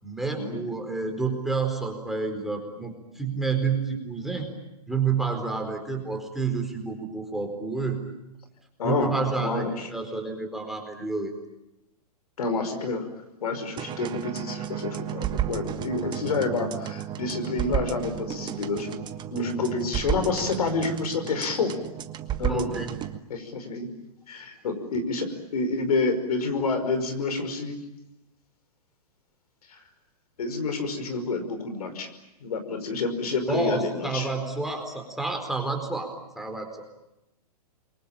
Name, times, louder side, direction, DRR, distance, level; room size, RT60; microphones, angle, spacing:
voice 1, 0.0-4.5 4.9-8.0 8.8-11.3 22.5-22.9 33.5-36.1 36.3-36.7, right 4 dB, ahead, 2 dB, 4.3 m, -29 dB
voice 2, 8.8-9.9 12.4-13.1 13.4-19.0 19.3-21.7 22.4-22.7 23.3-23.9 24.3-27.8 29.7-29.8 30.4-32.1 32.4-34.3, left 3 dB, 70° left, 7 dB, 5.4 m, -28 dB
sound 1, 13.8-23.2, right 11 dB, 20° right, 1.5 m, -33 dB
28.5 x 23.5 x 8.8 m, 0.90 s
hypercardioid pair, 120°, 20 cm